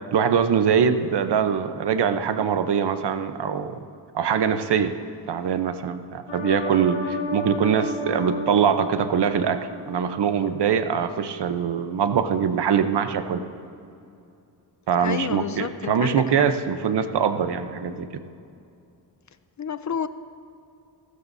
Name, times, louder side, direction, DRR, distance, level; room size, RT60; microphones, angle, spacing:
voice 1, 0.1-3.8 4.1-4.9 5.3-13.4 14.9-18.2, right 7 dB, 70° right, 9 dB, 0.9 m, -23 dB
sound 1, 6.3-10.5 10.9-11.0, left 2 dB, 85° left, 2.8 m, -33 dB
voice 2, 15.0-16.2 19.6-20.1, left 7 dB, 45° left, 12 dB, 0.6 m, -29 dB
26.5 x 13.0 x 2.7 m, 2.5 s
cardioid pair, 90°, 42 cm